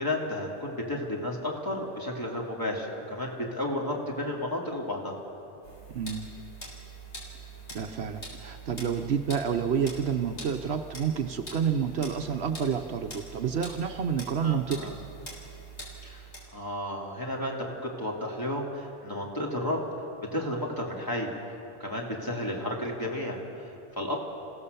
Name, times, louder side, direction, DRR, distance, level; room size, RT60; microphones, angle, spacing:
voice 1, 0.0-5.2 14.4-15.0 16.0-16.3 16.5-19.8 20.3-21.3 21.8-24.2, left 1 dB, 20° left, -2 dB, 2.9 m, -32 dB
sound 1, 5.6-16.5, right 2 dB, 75° left, 4.4 m, -44 dB
voice 2, 5.9-6.3 7.7-14.9, right 7 dB, 65° right, 6 dB, 1.1 m, -29 dB
28.0 x 16.0 x 6.9 m, 2.8 s
omnidirectional pair, 1.2 m